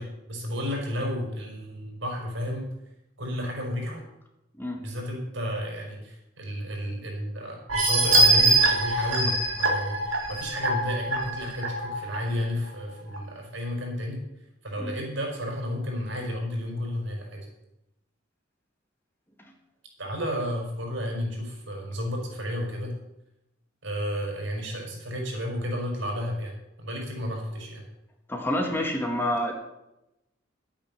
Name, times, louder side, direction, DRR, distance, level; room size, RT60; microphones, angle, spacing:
voice 1, 0.0-2.7 3.2-4.0 4.8-14.2 14.6-17.5 20.0-23.0 23.8-26.5 26.8-27.8, equal, 70° right, -1 dB, 5.5 m, -32 dB
sound 1, 7.7-12.2 12.7-12.8 13.1-13.2, right 2 dB, 85° right, 3.0 m, -23 dB
voice 2, 28.3-29.5, left 1 dB, 10° left, 2 dB, 1.7 m, -28 dB
12.5 x 9.0 x 7.2 m, 0.89 s
head